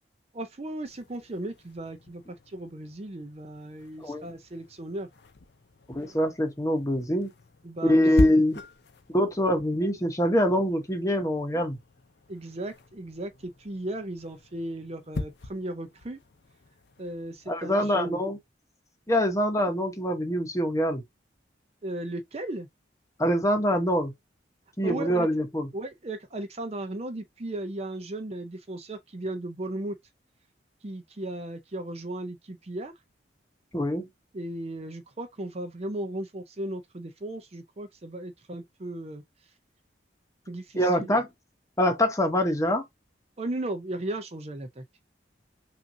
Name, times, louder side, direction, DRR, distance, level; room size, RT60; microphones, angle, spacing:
voice 1, 0.3-5.1 7.6-8.4 12.3-16.2 17.0-18.2 21.8-22.7 24.8-25.3 25.7-30.0 30.8-32.9 34.3-39.2 40.5-41.2 43.4-44.8, right 1 dB, 35° right, 0.6 m, -36 dB
sound 1, 0.8-17.6, left 2 dB, 65° left, 0.7 m, -40 dB
voice 2, 5.9-7.3 7.8-8.6 9.1-11.8 17.5-18.4 19.1-21.0 23.2-24.1 24.8-25.7 33.7-34.1 40.7-41.3 41.8-42.8, equal, 15° left, 0.9 m, -24 dB
5.7 x 2.5 x 2.7 m
head